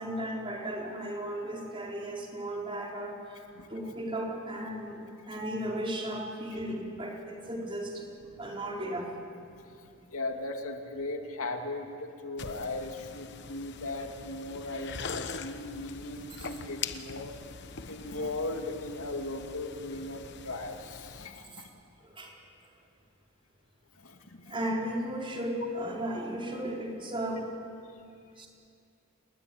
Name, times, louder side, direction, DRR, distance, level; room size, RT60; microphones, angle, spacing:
voice 1, 0.0-3.4 3.7-8.1 8.4-9.1 16.3-16.5 22.0-22.3 24.5-27.5 28.4-28.5, right 1 dB, 25° right, -1 dB, 4.4 m, -35 dB
voice 2, 9.7-17.3 17.7-21.8 24.0-24.6, left 2 dB, 85° left, 3 dB, 2.6 m, -38 dB
sound 1, 12.4-21.3, left 5 dB, 55° left, 1.1 m, -43 dB
28.5 x 21.0 x 8.8 m, 2.4 s
head